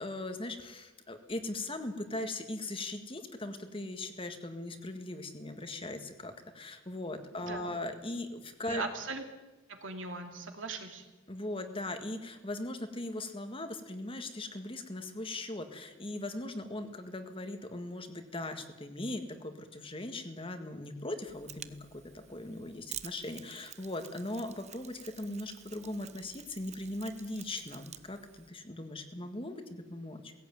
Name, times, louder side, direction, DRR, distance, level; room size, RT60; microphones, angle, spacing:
voice 1, 0.0-8.8 11.3-30.3, left 2 dB, 25° left, 7 dB, 1.7 m, -39 dB
voice 2, 7.3-7.6 8.7-9.3 9.7-11.0, right 3 dB, 65° right, 4 dB, 2.9 m, -39 dB
Mechanisms, 21.3-28.5, right 11 dB, 35° right, 0.7 m, -50 dB
18.0 x 16.5 x 9.2 m, 1.1 s
head